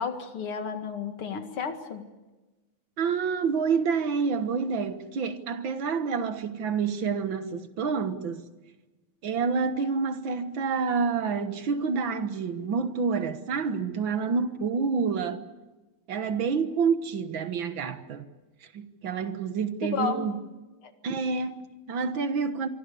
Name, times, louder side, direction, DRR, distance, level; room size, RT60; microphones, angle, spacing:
voice 1, 0.0-2.0 19.8-20.3 20.8-20.9, left 6 dB, 85° left, 2.9 m, -32 dB
voice 2, 3.0-8.5 9.2-15.4 16.1-18.3 18.7-20.4 21.0-22.7, right 5 dB, 65° right, 2.1 m, -28 dB
25.5 x 24.0 x 7.0 m
omnidirectional pair, 2.3 m